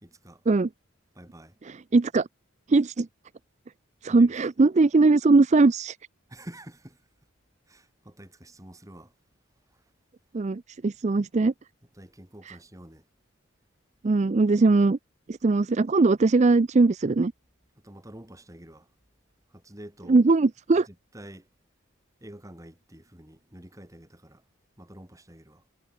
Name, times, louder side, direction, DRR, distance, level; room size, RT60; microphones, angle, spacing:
voice 1, 0.0-0.4 1.1-1.5 4.1-4.3 6.3-7.0 7.7-9.1 9.7-9.8 12.0-13.0 17.8-18.9 19.5-20.2 20.9-21.5 22.2-24.4 24.8-25.6, right 1 dB, 15° right, 2.2 m, -47 dB
voice 2, 1.6-2.3 2.7-3.1 4.0-6.0 10.3-11.5 12.4-12.6 14.0-15.0 15.3-17.3 20.1-20.9, right 3 dB, 35° right, 0.4 m, -20 dB
head